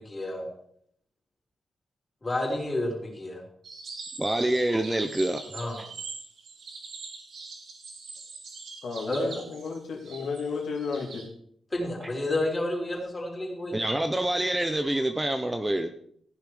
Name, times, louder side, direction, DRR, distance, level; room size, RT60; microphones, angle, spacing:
voice 1, 0.1-0.4 2.2-3.4 5.5-5.8 9.1-9.2 11.7-13.8, left 1 dB, 20° left, 4.5 m, -30 dB
sound 1, 3.6-11.3, right 4 dB, 65° right, 3.4 m, -43 dB
voice 2, 4.2-5.4 13.7-15.9, right 1 dB, 10° right, 0.7 m, -26 dB
voice 3, 8.8-11.2, left 5 dB, 70° left, 2.8 m, -33 dB
15.5 x 10.5 x 5.0 m
wide cardioid pair, 170°, 0 cm